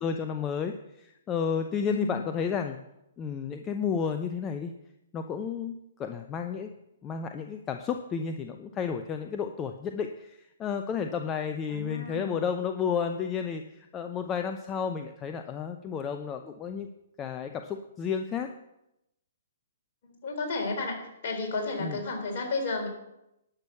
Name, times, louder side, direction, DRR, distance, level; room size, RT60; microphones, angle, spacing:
voice 1, 0.0-2.8 3.2-4.7 5.1-6.7 7.0-16.9 17.2-18.5 21.8-22.0, left 6 dB, 20° left, 6 dB, 0.7 m, -32 dB
voice 2, 1.9-2.2 11.7-12.4 20.0-21.0 21.2-22.9, left 3 dB, 50° left, 1 dB, 3.8 m, -32 dB
11.5 x 6.3 x 7.1 m, 0.87 s
figure-of-eight pair, 125°, 0 cm